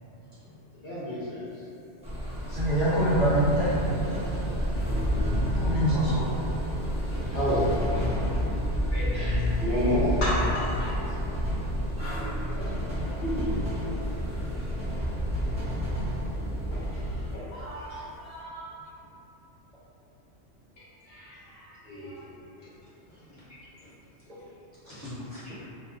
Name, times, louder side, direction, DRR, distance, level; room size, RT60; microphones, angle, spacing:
voice 1, 0.2-0.7 7.3-7.6 18.7-18.9 23.1-23.9 24.4-24.5 24.9-25.0 25.3-25.6, left 1 dB, 35° left, -12 dB, 0.9 m, -52 dB
voice 2, 0.7-1.6 4.8-5.3 7.1-7.7 8.9-11.0 12.1-13.7 15.6-15.7 16.7-18.7 20.8-22.3, left 1 dB, 60° left, -10 dB, 0.8 m, -32 dB
sound 1, 2.0-17.3, equal, 10° right, 0.5 m, -29 dB
voice 3, 2.5-4.1 5.3-6.2 17.9-18.0 24.8-25.1, right 1 dB, 40° right, -12 dB, 0.8 m, -26 dB
2.4 x 2.1 x 3.6 m, 2.9 s
omnidirectional pair, 1.2 m